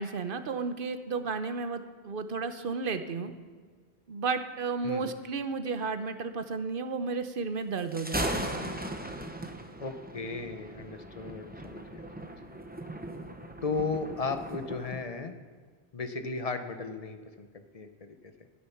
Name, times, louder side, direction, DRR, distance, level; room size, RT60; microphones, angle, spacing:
voice 1, 0.0-3.3 4.1-8.8, right 4 dB, 60° right, 9 dB, 1.0 m, -33 dB
Thunder, 7.8-15.0, right 1 dB, 10° right, 0.7 m, -38 dB
voice 2, 9.8-12.6 13.6-15.3 15.9-17.5 17.7-18.3, left 4 dB, 40° left, 8 dB, 0.9 m, -36 dB
12.0 x 10.5 x 5.8 m, 1.5 s
omnidirectional pair, 1.1 m